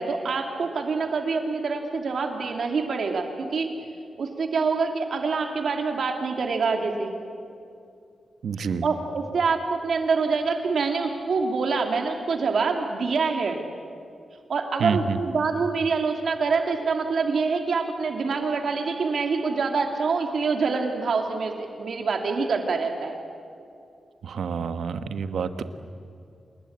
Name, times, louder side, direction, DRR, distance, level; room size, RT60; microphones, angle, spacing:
voice 1, 0.0-3.7 4.2-7.1 8.6-13.6 14.5-23.2, right 4 dB, 60° right, 4 dB, 2.5 m, -26 dB
voice 2, 8.4-8.8 14.8-15.2 24.2-25.6, right 6 dB, 85° right, 9 dB, 1.3 m, -28 dB
28.0 x 20.5 x 8.7 m, 2.5 s
wide cardioid pair, 140°, 0 cm